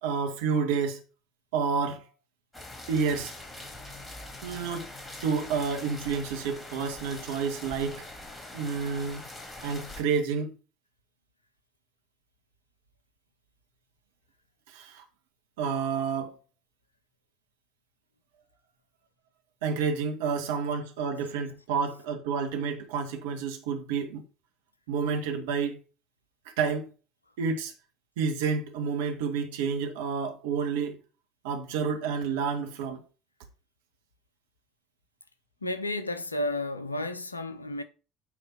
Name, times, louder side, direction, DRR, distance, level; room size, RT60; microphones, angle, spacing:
voice 1, 0.0-1.0 1.5-2.1 2.9-3.3 4.4-4.9 5.2-8.0 8.5-9.3 9.6-10.5 14.7-15.0 15.6-16.4 19.6-24.2 24.9-25.8 26.4-26.9 27.4-27.7 28.2-31.0 31.4-33.0, right 6 dB, 65° right, 1.6 m, -29 dB
sound 1, 2.5-10.0, left 2 dB, 15° left, 3.1 m, -43 dB
voice 2, 35.6-37.8, left 1 dB, 85° left, 0.7 m, -32 dB
8.8 x 3.3 x 5.7 m
figure-of-eight pair, 60°, 0 cm